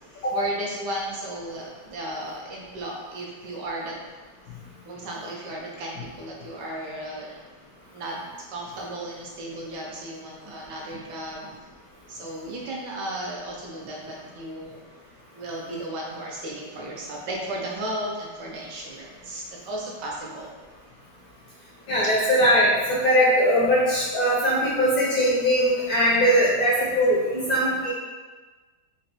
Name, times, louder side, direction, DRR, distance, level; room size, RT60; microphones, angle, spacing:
voice 1, 0.1-4.0 4.8-7.4 7.9-8.2 8.5-11.5 12.1-14.8 15.3-20.5, right 1 dB, 75° right, -2 dB, 1.1 m, -34 dB
voice 2, 21.9-27.9, equal, 75° left, -6 dB, 0.8 m, -21 dB
3.9 x 2.2 x 2.6 m, 1.3 s
omnidirectional pair, 2.1 m